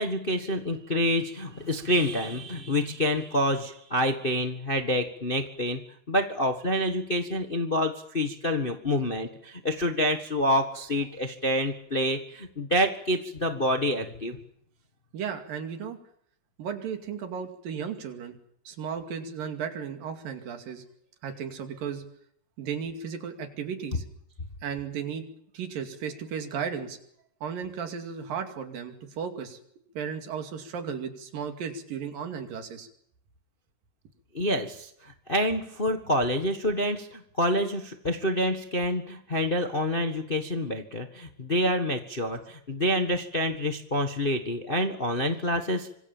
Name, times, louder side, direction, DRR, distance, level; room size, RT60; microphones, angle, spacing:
voice 1, 0.0-5.8 6.1-14.4 34.3-45.9, equal, 50° left, 6 dB, 0.6 m, -27 dB
voice 2, 15.1-16.0 16.6-18.4 18.7-20.8 21.2-22.0 22.6-24.0 24.6-25.3 25.5-27.0 27.4-29.6 30.0-32.9, right 7 dB, 80° right, 6 dB, 4.2 m, -35 dB
26.0 x 23.5 x 7.3 m, 0.69 s
omnidirectional pair, 3.9 m